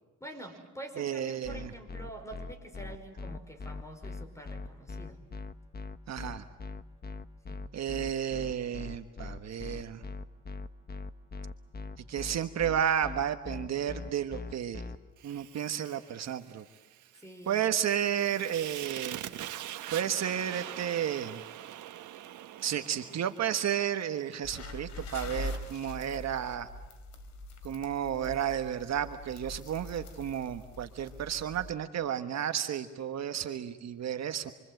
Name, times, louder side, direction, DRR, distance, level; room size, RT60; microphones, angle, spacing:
voice 1, 0.2-5.2 7.5-7.7 17.2-17.6, right 1 dB, 10° left, 6 dB, 5.4 m, -46 dB
voice 2, 1.0-1.7 6.1-6.4 7.7-10.0 12.1-14.8 15.2-16.6 17.5-19.2 19.9-21.4 22.6-26.7 27.6-34.5, right 9 dB, 60° right, 8 dB, 1.4 m, -32 dB
sound 1, 1.4-15.0, left 3 dB, 30° left, 1.3 m, -40 dB
Fire, 15.2-24.4, right 12 dB, 80° right, 1.5 m, -44 dB
sound 2, 24.4-31.7, left 2 dB, 65° left, 3.6 m, -43 dB
28.0 x 24.5 x 7.9 m, 1.2 s
cardioid pair, 90°, 30 cm